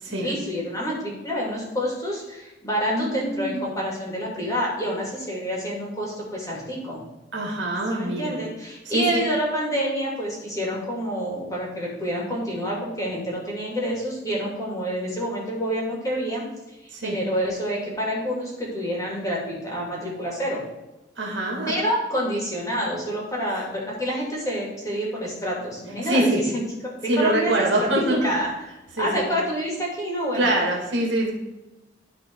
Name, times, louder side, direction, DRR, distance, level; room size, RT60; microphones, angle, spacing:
voice 1, 0.0-7.0 7.9-20.6 21.7-27.9 28.2-28.5 29.0-30.5, equal, 15° left, -4 dB, 2.7 m, -28 dB
voice 2, 2.9-3.6 7.3-8.3 8.9-9.2 16.9-17.2 21.2-21.7 26.0-26.4 27.1-28.3 29.0-29.2 30.3-31.3, right 1 dB, 70° right, -1 dB, 2.2 m, -24 dB
12.5 x 4.2 x 4.7 m, 1.0 s
head